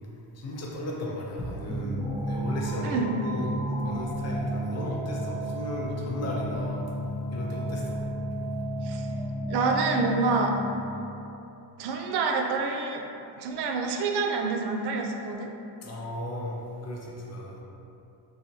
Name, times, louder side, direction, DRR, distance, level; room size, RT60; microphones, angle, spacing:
voice 1, 0.3-6.9 7.3-8.0 15.8-17.6, left 1 dB, 35° left, -3 dB, 0.7 m, -35 dB
sound 1, 1.7-10.9, equal, 5° right, 0.9 m, -32 dB
voice 2, 9.5-10.6 11.8-13.0 13.4-15.5, right 4 dB, 65° right, 2 dB, 0.5 m, -27 dB
3.9 x 3.0 x 2.6 m, 2.8 s
cardioid pair, 115°, 43 cm